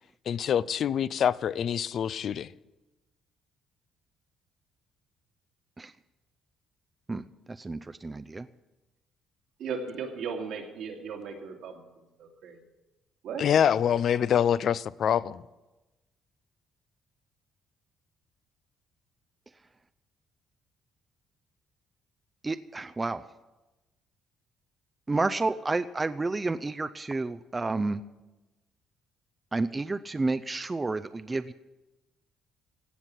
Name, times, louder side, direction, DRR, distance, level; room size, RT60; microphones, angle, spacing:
voice 1, 0.3-2.5 13.4-15.4, left 9 dB, 60° left, 0.4 m, -25 dB
voice 2, 7.6-8.5 22.4-23.2 25.1-28.0 29.5-31.5, right 3 dB, 20° right, 0.5 m, -30 dB
voice 3, 9.6-11.8 12.2-12.6 13.2-13.5, right 5 dB, 80° right, 2.6 m, -36 dB
16.5 x 5.9 x 9.8 m
cardioid pair, 90°, 0 cm